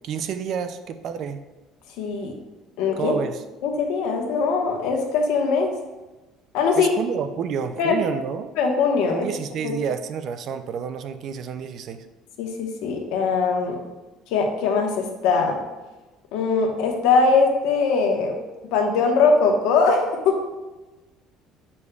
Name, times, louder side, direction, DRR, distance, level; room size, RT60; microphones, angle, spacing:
voice 1, 0.0-1.4 3.0-3.4 6.8-8.5 9.1-12.1, right 7 dB, 45° right, 10 dB, 0.4 m, -29 dB
voice 2, 2.0-2.3 2.8-3.1 3.6-5.7 6.5-6.9 7.8-8.0 8.6-9.3 9.6-9.7 12.4-13.8 14.3-15.6 16.3-18.4 18.7-20.4, left 4 dB, 80° left, 2 dB, 1.1 m, -21 dB
7.9 x 5.3 x 2.3 m, 1.1 s
cardioid pair, 165°, 0 cm